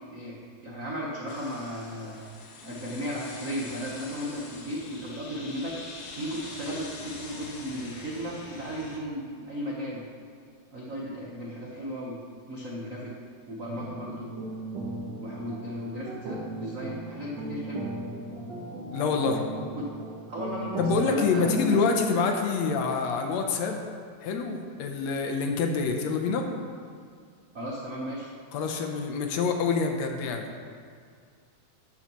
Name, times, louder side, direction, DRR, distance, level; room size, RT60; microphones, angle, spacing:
voice 1, 0.0-2.2 2.6-5.8 6.2-10.0 10.7-12.2 12.5-13.1 13.5-14.3 15.2-17.8 19.7-19.8 20.3-21.8 27.5-28.3, equal, 85° right, -4 dB, 0.7 m, -35 dB
sound 1, 1.3-9.0, left 3 dB, 90° left, 2.8 m, -44 dB
sound 2, 13.7-21.4, right 2 dB, 60° right, 1.2 m, -37 dB
voice 2, 18.9-19.4 20.8-23.8 24.2-26.5 28.5-30.5, left 4 dB, 70° left, 4 dB, 1.9 m, -26 dB
13.0 x 11.0 x 3.1 m, 2.2 s
omnidirectional pair, 3.4 m